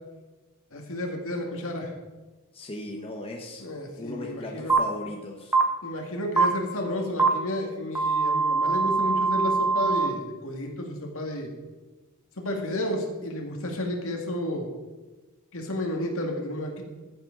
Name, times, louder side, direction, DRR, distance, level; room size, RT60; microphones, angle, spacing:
voice 1, 0.7-1.9 3.6-4.7 5.8-11.5 12.4-14.7 15.5-16.8, left 1 dB, 65° left, 1 dB, 2.2 m, -31 dB
voice 2, 2.5-3.6 4.0-5.6, left 2 dB, 25° left, 0 dB, 1.2 m, -37 dB
sound 1, 4.7-4.8 5.5-5.6 6.4-6.5 7.2-7.3 7.9-10.1, right 4 dB, 10° right, 1.1 m, -22 dB
14.5 x 7.8 x 3.9 m, 1.2 s
head